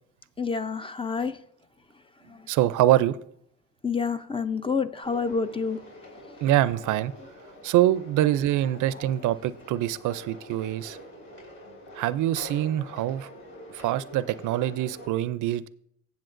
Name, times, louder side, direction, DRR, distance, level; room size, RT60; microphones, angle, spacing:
voice 1, 0.4-1.4 2.3-2.5 3.8-5.8, left 5 dB, 20° left, 0.5 m, -28 dB
voice 2, 2.5-3.2 6.4-7.1 7.6-11.0 12.0-13.3 13.7-15.7, right 13 dB, 80° right, 0.4 m, -24 dB
sound 1, 5.0-15.1, left 1 dB, 45° left, 4.4 m, -46 dB
15.5 x 7.1 x 2.5 m
cardioid pair, 90°, 30 cm